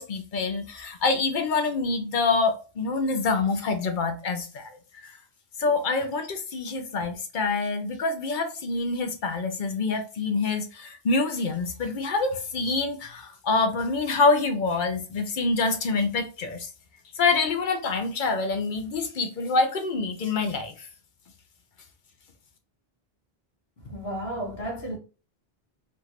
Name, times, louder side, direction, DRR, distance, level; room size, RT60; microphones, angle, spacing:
voice 1, 0.0-4.7 5.0-5.1 5.6-16.7 17.2-20.7, left 3 dB, 55° left, 0.8 m, -26 dB
voice 2, 23.8-25.0, right 1 dB, 70° left, 1.4 m, -33 dB
3.6 x 2.4 x 2.8 m
omnidirectional pair, 1.1 m